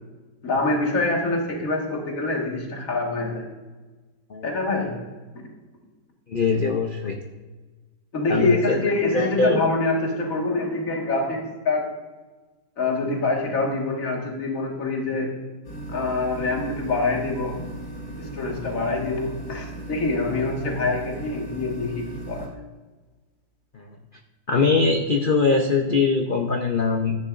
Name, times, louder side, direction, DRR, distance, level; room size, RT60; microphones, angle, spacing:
voice 1, 0.4-3.5 4.4-5.1 5.4-5.5 8.1-11.9 12.8-15.4 15.9-17.6 18.2-22.5, left 3 dB, 45° left, 0 dB, 2.1 m, -25 dB
voice 2, 6.3-7.2 8.3-9.6 23.7-23.8 24.5-27.2, left 4 dB, 70° left, 3 dB, 0.4 m, -22 dB
sound 1, 15.6-22.5, right 1 dB, 85° left, 2.4 m, -36 dB
14.5 x 10.5 x 2.5 m, 1.3 s
omnidirectional pair, 2.0 m